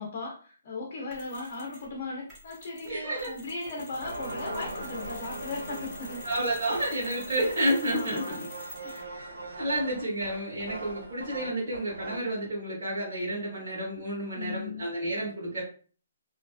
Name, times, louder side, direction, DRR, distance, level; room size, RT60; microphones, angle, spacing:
voice 1, 0.0-6.3 7.9-8.4 8.8-9.2 14.3-14.9, left 3 dB, 35° left, -1 dB, 0.5 m, -37 dB
Mechanisms, 1.1-1.9 2.3-9.2, left 1 dB, 10° right, 0.7 m, -47 dB
voice 2, 2.8-3.3 6.2-8.4 9.6-15.6, right 1 dB, 50° right, -7 dB, 1.2 m, -30 dB
sound 1, 3.5-12.3, right 2 dB, 85° right, 1.4 m, -41 dB
2.5 x 2.2 x 2.5 m, 0.40 s
hypercardioid pair, 175°, 0 cm